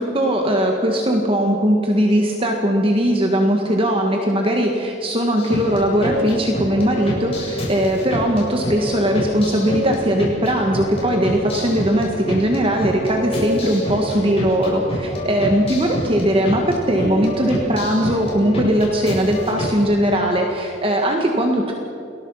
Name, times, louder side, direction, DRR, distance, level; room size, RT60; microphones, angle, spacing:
voice 1, 0.0-21.7, equal, 30° right, 2 dB, 1.9 m, -19 dB
sound 1, 5.4-19.8, equal, 30° left, 7.6 m, -27 dB
29.0 x 20.5 x 5.8 m, 2.9 s
head